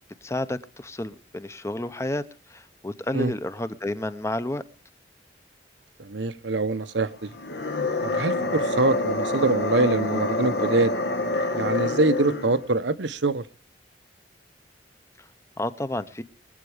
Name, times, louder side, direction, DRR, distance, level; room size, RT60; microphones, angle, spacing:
voice 1, 0.2-4.6 8.4-8.6 15.2-15.3 15.6-16.2, left 1 dB, 15° left, 12 dB, 0.8 m, -31 dB
voice 2, 6.0-7.3 8.0-10.9 11.5-13.5, right 3 dB, 85° right, 11 dB, 1.0 m, -24 dB
sound 1, 7.3-12.6, left 2 dB, 70° left, 1.4 m, -27 dB
22.5 x 8.3 x 5.0 m, 0.34 s
head